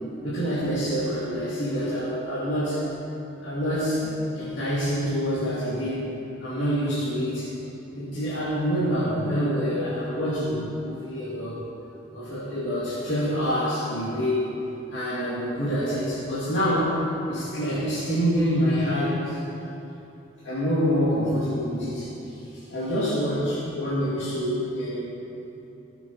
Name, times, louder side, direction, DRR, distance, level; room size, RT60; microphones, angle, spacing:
voice 1, 0.2-2.8 3.4-6.1 6.4-7.5 8.0-11.6 12.1-14.5 14.9-17.0 17.3-19.4 20.4-25.1, equal, 70° left, -11 dB, 2.5 m, -26 dB
18.0 x 7.1 x 4.3 m, 3.0 s
head